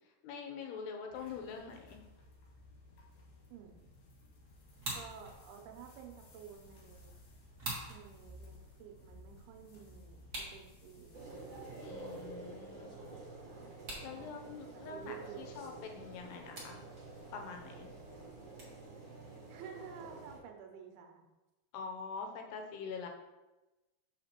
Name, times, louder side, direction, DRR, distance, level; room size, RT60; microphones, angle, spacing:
voice 1, 0.2-2.0 11.8-12.9 14.0-16.8 17.3-17.9 21.7-23.1, left 5 dB, 80° left, 3 dB, 2.7 m, -44 dB
sound 1, 1.1-12.4, left 1 dB, 60° left, 2.7 m, -58 dB
sound 2, 4.7-18.9, right 2 dB, 60° right, 1.0 m, -50 dB
voice 2, 4.9-7.1 7.9-11.3 14.1-15.8 19.5-21.3, right 7 dB, 80° right, 4 dB, 2.7 m, -52 dB
sound 3, 11.1-20.4, right 2 dB, 40° right, 1.8 m, -49 dB
6.9 x 5.8 x 2.9 m, 1.1 s
omnidirectional pair, 4.7 m